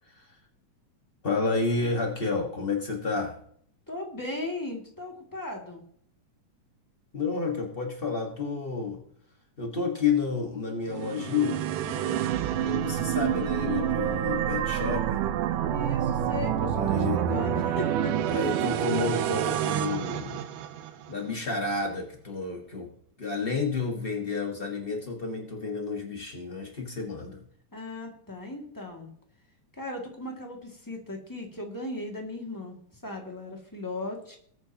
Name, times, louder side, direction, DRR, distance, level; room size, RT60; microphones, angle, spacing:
voice 1, 1.2-3.4 7.1-9.0 9.6-11.6 12.6-15.2 16.7-17.2 18.3-20.4 21.1-22.9 23.2-27.4, left 4 dB, 85° left, 1 dB, 0.5 m, -30 dB
voice 2, 3.9-5.8 11.9-12.2 15.7-18.1 27.7-29.1 29.7-34.4, left 2 dB, 10° left, 1 dB, 1.4 m, -37 dB
sound 1, 10.9-21.1, right 10 dB, 80° right, 2.3 m, -28 dB
20.5 x 9.0 x 2.9 m, 0.63 s
omnidirectional pair, 3.7 m